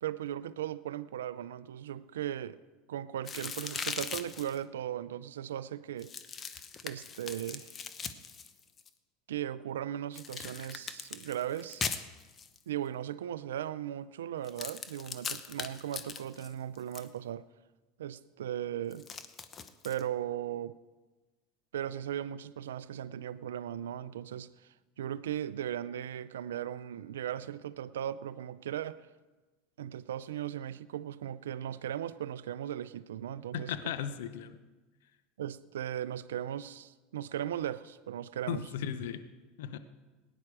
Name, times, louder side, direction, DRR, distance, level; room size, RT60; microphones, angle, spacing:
voice 1, 0.0-2.6 2.9-6.1 6.8-7.7 9.3-11.8 12.7-17.5 18.0-19.1 19.8-20.8 21.7-24.5 25.0-29.0 29.8-33.7 35.4-38.7, right 11 dB, 85° right, 0.5 m, -37 dB
sound 1, 3.3-4.6 6.0-8.9 10.1-12.6 14.4-17.1 18.9-20.0, left 6 dB, 30° left, 1.0 m, -40 dB
voice 2, 33.5-34.6 38.5-39.2 39.6-39.8, left 9 dB, 75° left, 0.8 m, -36 dB
17.5 x 10.0 x 4.8 m
hypercardioid pair, 90°, 0 cm